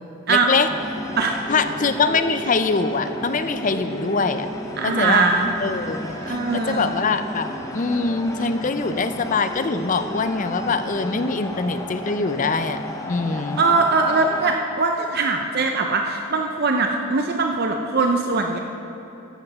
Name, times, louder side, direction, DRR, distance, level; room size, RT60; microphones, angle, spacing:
voice 1, 0.3-0.7 1.5-4.5 4.8-5.3 5.6-13.6, left 4 dB, 35° left, 10 dB, 0.5 m, -23 dB
sound 1, 0.7-14.6, equal, 15° left, 0.8 m, -33 dB
voice 2, 4.8-5.5 6.2-6.9 13.6-18.6, right 3 dB, 45° right, 3 dB, 0.6 m, -21 dB
14.0 x 6.5 x 6.0 m, 3.0 s
head